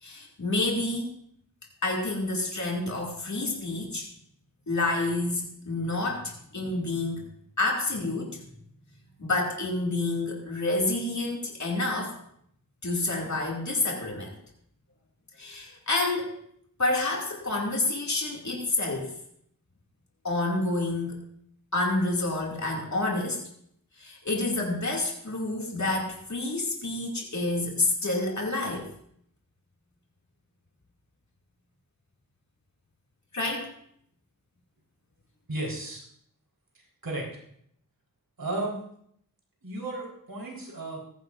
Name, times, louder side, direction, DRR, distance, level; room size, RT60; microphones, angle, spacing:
voice 1, 0.0-1.1 1.8-4.1 4.7-7.2 7.6-8.4 9.2-12.1 12.8-14.4 15.4-16.4 16.8-19.1 20.2-21.2 21.7-23.4 24.0-28.9 33.3-33.7, left 2 dB, 55° left, -2 dB, 2.4 m, -28 dB
voice 2, 35.5-36.0 37.0-37.3 38.4-38.8 39.6-41.0, right 2 dB, 85° right, -2 dB, 4.1 m, -33 dB
16.5 x 14.5 x 2.6 m, 0.69 s
wide cardioid pair, 55°, 34 cm